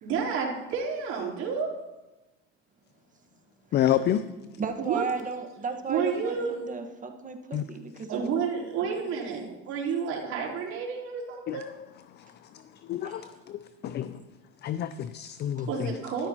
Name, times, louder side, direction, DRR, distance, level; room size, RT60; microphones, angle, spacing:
voice 1, 0.0-1.7 4.8-5.1 5.9-6.6 8.1-11.7 15.7-16.3, right 6 dB, 60° right, -5 dB, 3.8 m, -30 dB
voice 2, 3.7-4.3 7.5-7.6 11.5-11.6 12.9-13.2 13.5-14.2 14.6-15.9, left 11 dB, 35° left, 13 dB, 0.4 m, -28 dB
voice 3, 4.6-8.3 8.8-9.5 9.9-10.1 13.0-13.3 14.9-15.0 15.6-15.7, right 5 dB, 25° right, 5 dB, 1.5 m, -35 dB
14.0 x 12.5 x 3.0 m, 1.1 s
supercardioid pair, 105°, 30 cm